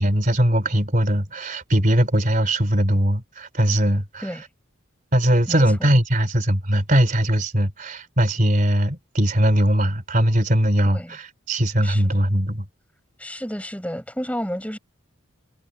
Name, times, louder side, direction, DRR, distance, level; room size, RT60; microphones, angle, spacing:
voice 1, 0.0-4.2 5.1-12.7, equal, 40° right, 3.8 m, -20 dB
voice 2, 5.5-5.9 10.8-11.2 11.8-12.2 13.2-14.8, equal, 5° left, 6.7 m, -31 dB
head